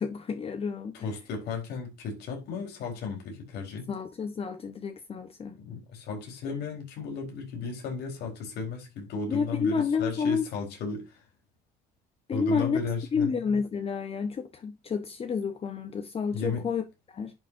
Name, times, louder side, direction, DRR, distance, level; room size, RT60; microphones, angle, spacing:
voice 1, 0.0-0.9 3.9-5.5 9.3-10.5 12.3-12.8 13.1-17.3, left 5 dB, 35° left, 1.1 m, -30 dB
voice 2, 0.9-3.9 5.5-11.2 12.3-13.6 16.3-16.6, left 4 dB, 75° left, 4.2 m, -35 dB
10.5 x 6.1 x 2.7 m
cardioid pair, 110°, 17 cm